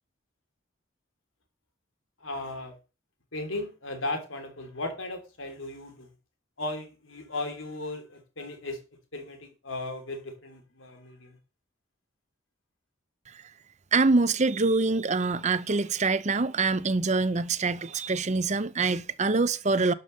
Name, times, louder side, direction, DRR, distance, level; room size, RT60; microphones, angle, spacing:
voice 1, 2.2-2.7 3.3-6.1 6.6-8.8 9.1-11.4, left 2 dB, 80° left, 3.2 m, -36 dB
voice 2, 13.9-19.9, right 3 dB, 35° right, 0.7 m, -25 dB
12.0 x 5.5 x 6.6 m
head